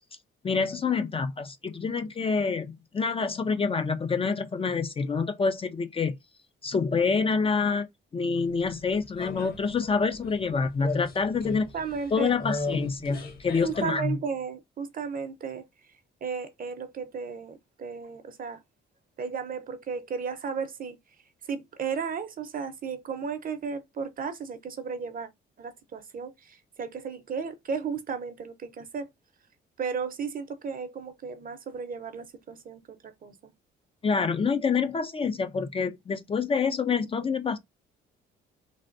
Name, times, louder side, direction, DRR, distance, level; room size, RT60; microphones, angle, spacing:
voice 1, 0.4-6.2 6.6-7.9 8.1-11.7 12.1-14.2 34.0-37.6, left 5 dB, 30° left, 0.4 m, -27 dB
sound 1, 8.4-13.8, left 3 dB, 50° left, 1.1 m, -37 dB
voice 2, 11.7-12.4 13.6-15.7 16.2-18.6 19.2-21.0 21.5-25.3 25.6-29.1 29.8-33.5, right 6 dB, 45° right, 0.7 m, -34 dB
3.3 x 2.5 x 2.5 m
cardioid pair, 90°, 20 cm